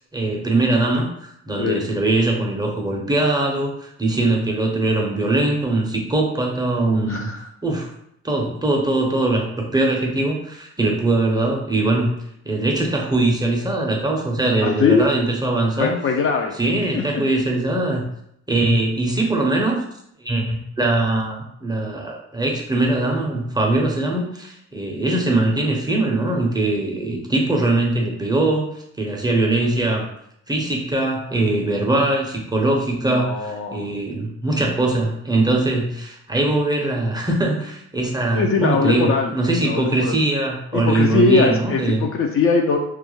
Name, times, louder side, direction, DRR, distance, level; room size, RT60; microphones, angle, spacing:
voice 1, 0.1-7.3 7.6-7.9 8.2-12.2 12.4-16.0 16.6-18.0 18.5-19.8 20.2-28.7 28.9-30.1 30.5-42.0, right 2 dB, 15° right, -1 dB, 0.5 m, -21 dB
voice 2, 14.6-15.1 15.8-16.5 16.9-17.2 32.8-33.8 38.3-39.3 39.6-40.2 40.7-42.8, left 4 dB, 45° left, 2 dB, 0.4 m, -21 dB
2.3 x 2.1 x 3.0 m, 0.74 s
cardioid pair, 90°, 30 cm